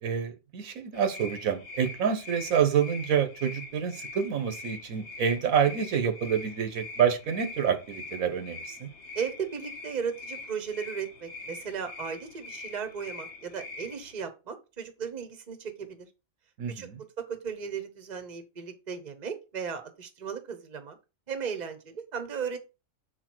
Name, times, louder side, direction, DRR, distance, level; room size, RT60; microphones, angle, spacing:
voice 1, 0.0-8.9 16.6-17.0, right 7 dB, 80° right, 9 dB, 1.3 m, -27 dB
sound 1, 0.9-14.1, left 3 dB, 55° left, 1.3 m, -43 dB
voice 2, 9.1-16.1 16.7-16.9 17.2-21.0 21.3-22.6, right 6 dB, 35° right, 8 dB, 1.0 m, -36 dB
6.6 x 4.4 x 4.4 m, 0.29 s
omnidirectional pair, 1.4 m